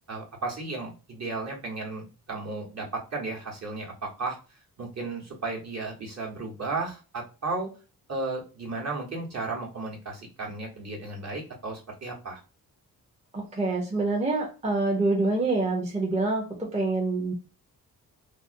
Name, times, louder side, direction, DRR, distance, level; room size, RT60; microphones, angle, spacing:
voice 1, 0.1-4.4 4.8-7.7 8.1-12.4, right 3 dB, 45° right, -1 dB, 1.1 m, -34 dB
voice 2, 13.3-17.3, right 2 dB, 15° right, -1 dB, 0.7 m, -26 dB
2.5 x 2.0 x 2.5 m, 0.33 s
cardioid pair, 100°, 38 cm